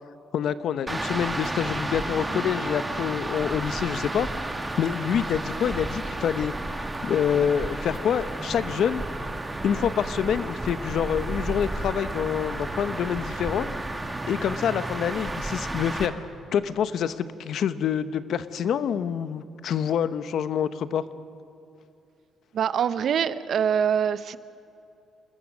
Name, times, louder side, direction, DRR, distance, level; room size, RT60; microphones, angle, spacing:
voice 1, 0.3-4.3 4.8-6.5 7.0-9.0 9.6-13.7 14.3-16.1 16.5-21.0, left 8 dB, 70° left, 13 dB, 0.9 m, -26 dB
sound 1, 0.9-16.1, right 2 dB, 15° right, 2.0 m, -32 dB
voice 2, 22.5-24.4, right 8 dB, 60° right, 14 dB, 0.8 m, -24 dB
27.5 x 20.5 x 6.3 m, 2.7 s
cardioid pair, 110°, 0 cm